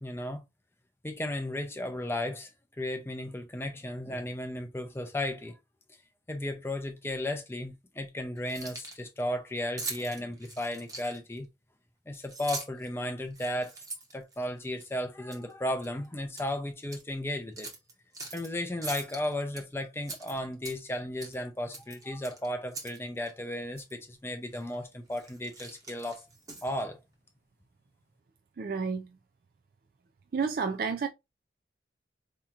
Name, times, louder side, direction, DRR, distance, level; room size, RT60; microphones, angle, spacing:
voice 1, 0.0-0.4 1.0-2.5 2.8-5.6 6.3-11.5 12.1-13.7 14.1-17.7 18.3-26.3 26.6-27.0, left 1 dB, 15° left, 0.4 m, -34 dB
Keys jangling, 8.4-9.1 9.8-11.4 12.1-12.9 13.3-14.9 15.3-15.5 15.8-16.5 16.8-17.0 17.6-18.5 18.8-19.6 20.0-20.9 21.2-21.4 21.7-23.0 23.3-23.4 23.8-23.9 24.5-24.7 25.1-26.8, right 3 dB, 20° right, 0.9 m, -42 dB
voice 2, 28.6-29.1 30.3-31.1, right 5 dB, 50° right, 0.3 m, -30 dB
4.7 x 2.8 x 2.4 m
head